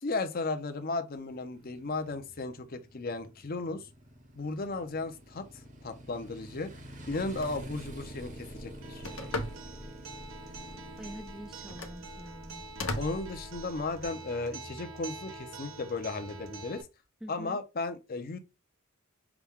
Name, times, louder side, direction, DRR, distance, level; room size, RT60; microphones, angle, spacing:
voice 1, 0.0-3.9 4.4-5.5 5.8-6.7 7.1-9.0 12.9-16.9 17.3-18.4, left 3 dB, 45° left, 0.6 m, -35 dB
Motorcycle, 1.1-16.9, right 1 dB, 35° right, 0.8 m, -49 dB
Telephone, 7.1-14.1, left 2 dB, 70° left, 0.9 m, -41 dB
Acoustic guitar, 8.8-16.8, right 4 dB, 70° right, 0.6 m, -47 dB
voice 2, 11.0-12.6 17.2-17.6, equal, ahead, 0.3 m, -45 dB
5.9 x 2.3 x 3.5 m
head